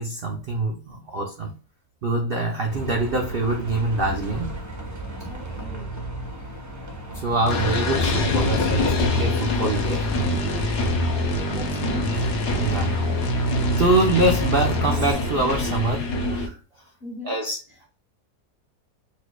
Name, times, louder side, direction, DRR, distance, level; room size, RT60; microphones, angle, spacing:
voice 1, 0.0-1.5 2.0-4.5 5.2-5.3 7.1-10.3 12.6-13.0 13.8-16.6 17.2-17.6, right 2 dB, 80° right, 0.5 m, -24 dB
Bus, 2.7-15.8, right 1 dB, 20° right, 0.4 m, -36 dB
voice 2, 5.3-6.0 11.3-12.3 17.0-17.4, left 1 dB, 35° left, 1.1 m, -38 dB
sound 1, 7.5-15.1, left 1 dB, 85° left, 1.4 m, -26 dB
sound 2, 7.5-16.5, left 2 dB, 60° left, 0.8 m, -27 dB
4.4 x 2.5 x 2.2 m
omnidirectional pair, 1.8 m